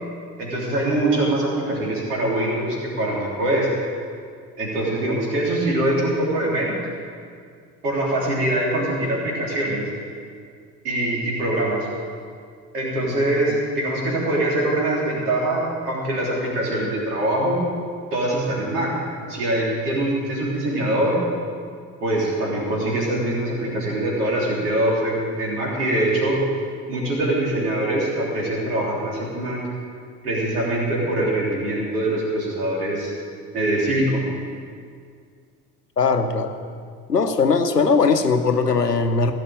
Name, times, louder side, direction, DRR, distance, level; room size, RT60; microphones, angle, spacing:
voice 1, 0.4-3.7 4.6-6.8 7.8-9.9 10.8-11.9 12.7-17.7 18.1-18.9 19.3-21.2 22.0-26.4 26.9-29.6 30.2-33.1 33.5-34.2, right 1 dB, 75° right, -4 dB, 3.5 m, -23 dB
voice 2, 36.0-36.5 37.1-39.3, left 4 dB, 90° left, 8 dB, 0.8 m, -19 dB
16.5 x 6.7 x 8.9 m, 2.2 s
figure-of-eight pair, 55°, 47 cm